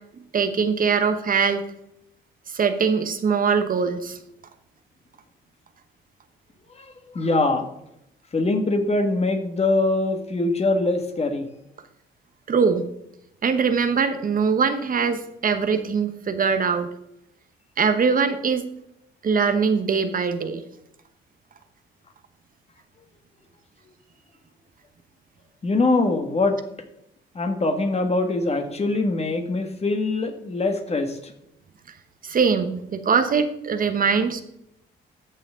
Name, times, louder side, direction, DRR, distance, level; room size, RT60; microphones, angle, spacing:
voice 1, 0.3-1.6 2.5-4.2 12.5-12.9 13.4-16.9 17.8-18.6 19.2-20.6 32.2-34.4, right 5 dB, 45° right, 9 dB, 1.0 m, -22 dB
voice 2, 6.7-7.7 8.3-11.5 25.6-26.6 27.3-31.3, left 2 dB, 30° left, 6 dB, 1.7 m, -23 dB
14.0 x 6.3 x 3.7 m, 0.79 s
cardioid pair, 90°, 20 cm